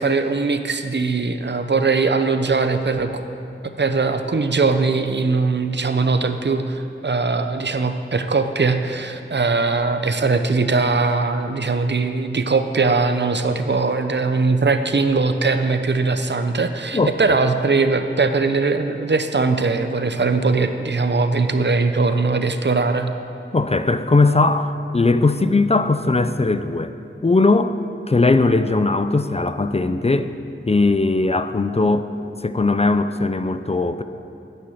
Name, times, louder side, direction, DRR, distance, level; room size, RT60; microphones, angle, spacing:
voice 1, 0.0-3.2 3.6-23.1, right 4 dB, 60° right, 8 dB, 0.8 m, -20 dB
voice 2, 23.5-26.9 27.2-27.8 28.1-30.3 30.6-32.1 32.4-34.0, left 3 dB, 30° left, 10 dB, 0.5 m, -19 dB
10.0 x 9.5 x 7.3 m, 2.6 s
wide cardioid pair, 65°, 21 cm